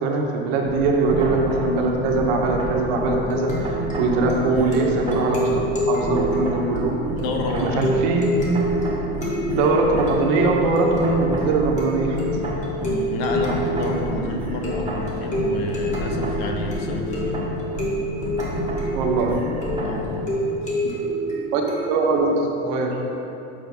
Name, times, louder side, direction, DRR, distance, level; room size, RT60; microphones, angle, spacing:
voice 1, 0.0-3.7 4.0-5.5 5.9-7.0 7.5-8.3 9.5-12.2 18.9-19.5 21.5-21.6 21.9-23.0, right 3 dB, 60° right, 1 dB, 1.3 m, -21 dB
sound 1, 0.6-5.8 6.0-20.0, right 1 dB, 15° right, 1.5 m, -30 dB
sound 2, 3.0-22.2, equal, 25° left, 1.8 m, -28 dB
voice 2, 7.2-8.0 12.8-17.4 19.8-20.6, left 2 dB, 65° left, 2 dB, 1.2 m, -29 dB
7.9 x 4.6 x 6.0 m, 2.9 s
supercardioid pair, 135°, 31 cm